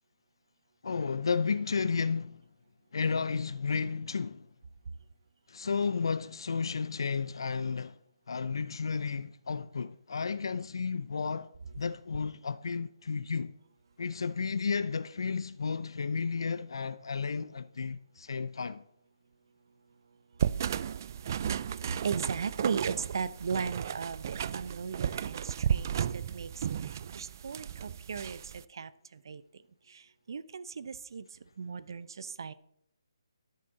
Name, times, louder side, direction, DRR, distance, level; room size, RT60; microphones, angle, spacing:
voice 1, 0.8-2.4 2.9-4.5 5.5-8.0 8.3-13.6 14.0-18.8, left 5 dB, 65° left, 0.6 m, -32 dB
sound 1, 20.4-28.6, right 9 dB, 40° right, 0.4 m, -34 dB
voice 2, 21.9-26.5 27.1-28.4 28.7-28.9 29.3-29.4 30.3-31.2 31.6-32.5, right 6 dB, 55° right, 0.8 m, -36 dB
13.0 x 10.5 x 4.0 m
figure-of-eight pair, 155°, 3 cm